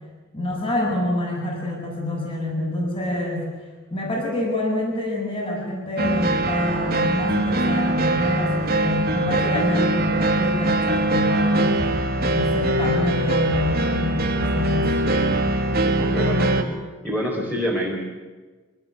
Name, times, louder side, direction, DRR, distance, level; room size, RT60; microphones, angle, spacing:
voice 1, 0.3-3.5 3.9-11.8 12.1-14.9, left 1 dB, 25° left, -1 dB, 7.4 m, -26 dB
sound 1, 6.0-16.6, right 2 dB, 45° right, 2.6 m, -22 dB
voice 2, 15.0-15.4 15.8-16.7 17.0-18.0, equal, 5° left, -3 dB, 4.7 m, -27 dB
26.0 x 18.5 x 9.5 m, 1.3 s
head